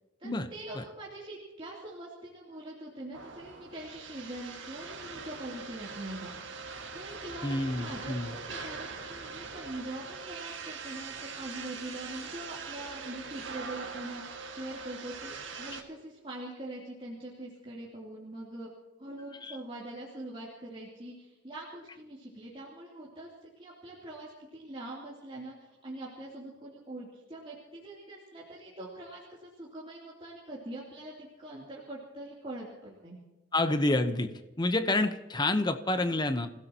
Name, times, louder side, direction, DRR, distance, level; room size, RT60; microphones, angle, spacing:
voice 1, 0.2-6.6 6.9-18.7 19.0-33.2, right 1 dB, 30° right, -6 dB, 3.2 m, -43 dB
sound 1, 3.1-15.8, right 5 dB, 85° right, 2.0 m, -42 dB
voice 2, 7.4-8.3 19.4-19.6 33.5-34.3 34.6-36.5, left 2 dB, 25° left, 8 dB, 0.9 m, -28 dB
27.5 x 16.5 x 3.0 m, 1.1 s
head